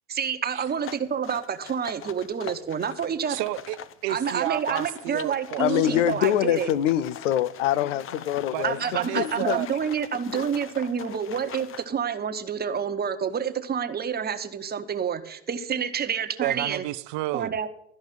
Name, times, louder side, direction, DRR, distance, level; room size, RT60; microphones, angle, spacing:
voice 1, 0.1-3.4 4.1-6.7 8.6-16.8 17.3-17.7, right 7 dB, 25° right, 1.2 m, -28 dB
sound 1, 0.7-11.9, left 9 dB, 35° left, 0.7 m, -42 dB
voice 2, 3.3-6.0 8.5-9.7 16.4-17.5, right 17 dB, 70° right, 0.7 m, -31 dB
voice 3, 5.6-8.8 9.1-9.6 10.3-10.4, left 12 dB, 90° left, 0.6 m, -24 dB
13.5 x 5.3 x 9.3 m
supercardioid pair, 95°, 36 cm